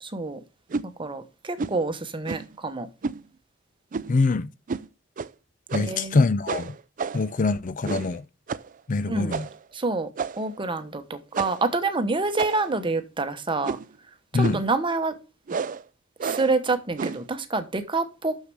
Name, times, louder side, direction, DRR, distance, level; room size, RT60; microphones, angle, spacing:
voice 1, 0.0-0.4 1.0-2.9 5.8-6.3 9.1-9.4 9.7-10.1 10.4-13.8 14.3-15.2 16.2-18.4, right 3 dB, 25° right, 1.0 m, -27 dB
sound 1, 0.7-0.9 1.6-1.8 2.3-2.6 3.0-3.2 3.9-4.2 4.7-4.9 5.2-5.3 5.7-6.0 6.5-7.3 7.8-8.2 8.5-8.7 9.3-9.6 10.2-10.5 11.3-11.7 12.4-12.8 13.6-14.0 14.4-14.7 15.5-15.8 16.2-16.6 17.0-17.3, right 5 dB, 40° right, 0.4 m, -31 dB
voice 2, 4.1-4.5 5.7-6.7 7.1-8.2 8.9-9.5 14.3-14.6, left 3 dB, 40° left, 0.5 m, -24 dB
6.7 x 6.6 x 6.0 m
head